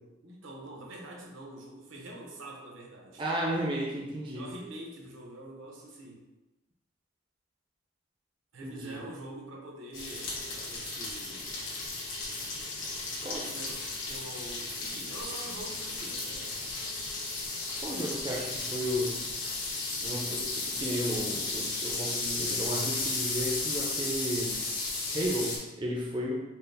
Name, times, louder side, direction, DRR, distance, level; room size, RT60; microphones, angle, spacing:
voice 1, 0.2-3.2 4.3-6.2 8.5-11.5 13.3-17.0, right 1 dB, 80° right, -1 dB, 0.8 m, -45 dB
voice 2, 3.2-4.5 8.6-9.0 13.2-13.5 17.8-19.2 20.0-24.6 25.1-26.4, equal, 25° right, -2 dB, 0.4 m, -33 dB
sound 1, 9.9-25.6, left 3 dB, 75° left, 1.1 m, -34 dB
4.4 x 2.1 x 3.3 m, 1.1 s
head